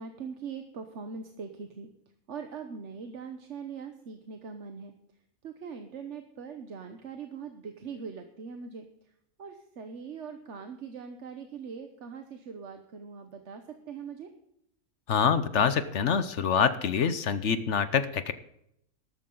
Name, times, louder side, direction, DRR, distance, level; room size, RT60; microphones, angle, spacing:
voice 1, 0.0-1.9 2.3-4.9 5.4-9.1 9.4-14.3, right 6 dB, 55° right, 6 dB, 1.3 m, -41 dB
voice 2, 15.1-18.3, left 7 dB, 60° left, 13 dB, 1.0 m, -25 dB
13.5 x 13.0 x 3.9 m, 0.77 s
omnidirectional pair, 1.5 m